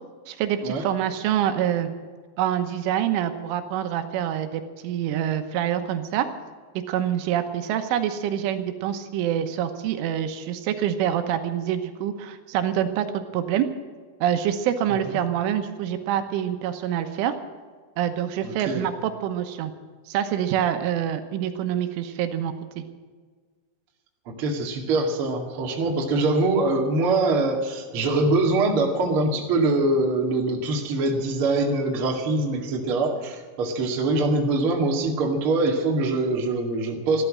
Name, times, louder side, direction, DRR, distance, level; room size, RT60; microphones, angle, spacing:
voice 1, 0.3-1.9 2.4-6.3 6.9-13.7 14.2-17.3 18.0-19.7 20.1-22.8, right 10 dB, 85° right, 8 dB, 3.5 m, -26 dB
voice 2, 18.4-18.8 24.3-37.2, right 2 dB, 40° right, 0 dB, 2.0 m, -23 dB
15.0 x 12.5 x 7.6 m, 1.5 s
omnidirectional pair, 5.6 m